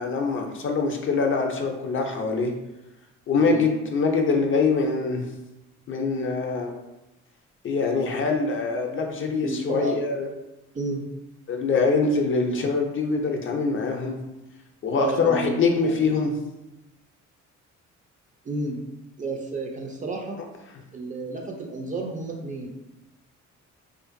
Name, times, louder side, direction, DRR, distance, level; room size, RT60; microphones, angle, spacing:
voice 1, 0.0-2.5 3.3-5.2 5.9-6.7 7.6-10.3 11.5-14.2 14.8-16.3, left 4 dB, 45° left, 2 dB, 0.4 m, -24 dB
voice 2, 9.4-10.0 10.7-11.0 14.9-16.0 18.4-18.8 19.2-20.4 20.9-22.8, right 2 dB, 25° right, 1 dB, 0.3 m, -31 dB
2.5 x 2.5 x 2.5 m, 0.96 s
cardioid pair, 90°, 30 cm